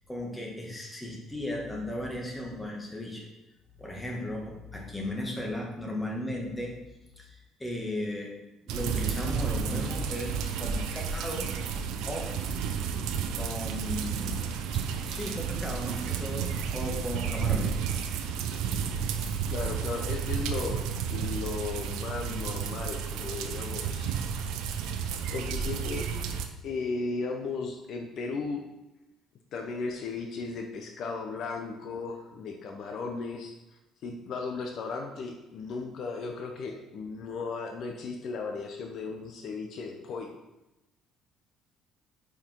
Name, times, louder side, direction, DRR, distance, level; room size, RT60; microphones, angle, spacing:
voice 1, 0.1-3.3 3.8-6.8 7.2-8.4 8.7-11.6 12.1-12.4 13.4-14.4 14.7-17.8, left 1 dB, 15° left, -1 dB, 1.7 m, -36 dB
sound 1, 8.7-26.5, right 6 dB, 80° right, 0.6 m, -32 dB
voice 2, 19.5-24.2 25.3-26.1 26.6-28.6 29.5-33.6 34.0-40.3, left 4 dB, 60° left, 3 dB, 0.7 m, -36 dB
5.0 x 4.7 x 4.5 m, 0.99 s
supercardioid pair, 85°, 0 cm